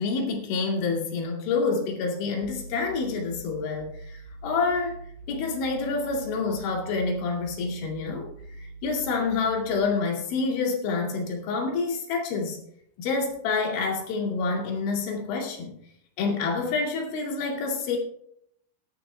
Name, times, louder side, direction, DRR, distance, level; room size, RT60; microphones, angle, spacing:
voice 1, 0.0-8.3 8.6-12.6 13.0-15.8 16.2-18.0, left 4 dB, 75° left, 0 dB, 4.6 m, -28 dB
sound 1, 2.4-9.8, right 2 dB, 55° right, 6.9 m, -43 dB
20.0 x 11.0 x 2.3 m, 0.71 s
omnidirectional pair, 5.6 m